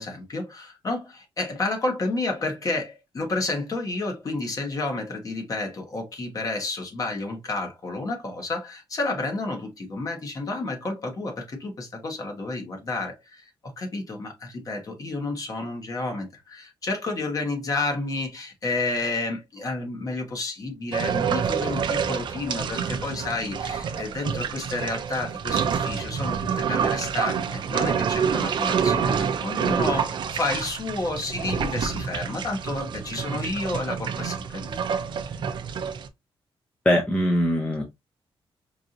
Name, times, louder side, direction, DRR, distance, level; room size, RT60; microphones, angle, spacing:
voice 1, 0.0-34.8, left 2 dB, 35° left, 1.2 m, -30 dB
sound 1, 20.9-36.1, right 7 dB, 50° right, 0.5 m, -27 dB
voice 2, 36.9-37.8, equal, 10° left, 0.7 m, -21 dB
4.6 x 2.7 x 2.5 m
wide cardioid pair, 170°, 10 cm